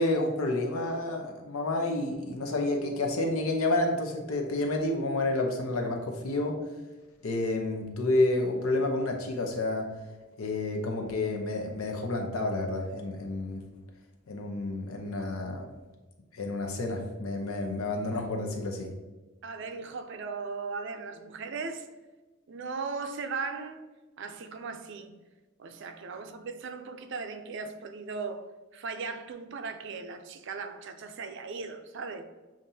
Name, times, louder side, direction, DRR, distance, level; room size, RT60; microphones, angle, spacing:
voice 1, 0.0-6.6 7.2-9.9 10.4-13.6 14.3-15.7 16.3-18.9, left 2 dB, 90° left, 0.8 m, -29 dB
voice 2, 19.4-21.9 22.5-23.8 24.2-25.1 25.6-32.2, right 4 dB, 60° right, 0.4 m, -38 dB
7.1 x 2.5 x 2.7 m
head